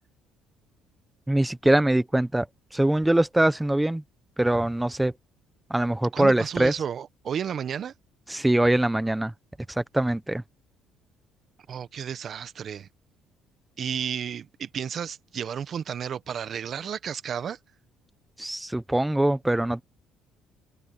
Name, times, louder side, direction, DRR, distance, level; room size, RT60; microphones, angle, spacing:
voice 1, 1.3-2.5 2.7-4.0 4.4-5.1 5.7-6.7 8.3-9.3 9.8-10.4 18.4-19.8, right 1 dB, 5° right, 0.9 m, -23 dB
voice 2, 6.1-7.9 11.7-12.9 13.8-17.6, right 8 dB, 45° right, 1.1 m, -32 dB
cardioid pair, 130°, 0 cm